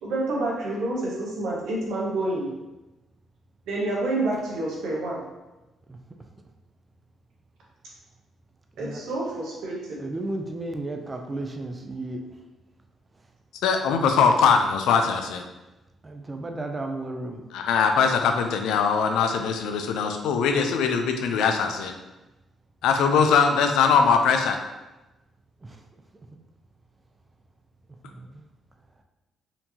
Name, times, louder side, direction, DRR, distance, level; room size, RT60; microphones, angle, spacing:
voice 1, 0.0-2.5 3.7-5.2 8.8-10.0, right 2 dB, 80° right, -4 dB, 1.1 m, -28 dB
voice 2, 10.0-12.3 16.0-17.4 25.6-25.8 28.0-28.5, right 2 dB, 25° right, 4 dB, 0.4 m, -34 dB
voice 3, 13.6-15.4 17.5-21.9 22.8-24.6, left 6 dB, 90° left, 5 dB, 0.4 m, -21 dB
4.3 x 2.8 x 2.7 m, 1.0 s
cardioid pair, 90°, 0 cm